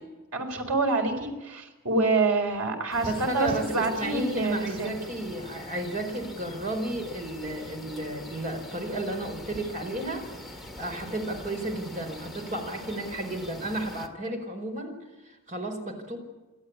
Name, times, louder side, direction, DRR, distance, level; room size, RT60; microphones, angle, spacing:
voice 1, 0.3-5.0, right 3 dB, 90° right, 4 dB, 4.1 m, -27 dB
sound 1, 2.9-14.1, left 1 dB, ahead, 2.3 m, -43 dB
voice 2, 3.1-10.2 10.5-14.9 15.2-16.2, right 1 dB, 35° right, 4 dB, 4.7 m, -33 dB
29.0 x 12.0 x 10.0 m, 1.1 s
head